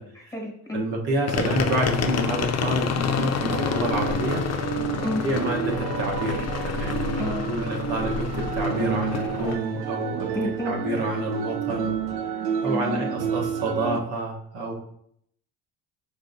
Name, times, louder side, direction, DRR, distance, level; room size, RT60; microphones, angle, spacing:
voice 1, 0.1-0.8 5.0-5.2 7.2-7.4 10.3-10.7 12.6-13.1, left 2 dB, 10° left, 0 dB, 1.3 m, -31 dB
voice 2, 0.7-4.4 5.2-10.3 10.6-11.9 12.6-14.7, right 2 dB, 65° right, -1 dB, 1.1 m, -28 dB
sound 1, 1.3-9.6, left 6 dB, 40° left, 0.5 m, -28 dB
sound 2, 3.5-14.0, right 6 dB, 90° right, 0.6 m, -30 dB
4.8 x 3.6 x 2.6 m, 0.70 s
supercardioid pair, 85°, 40 cm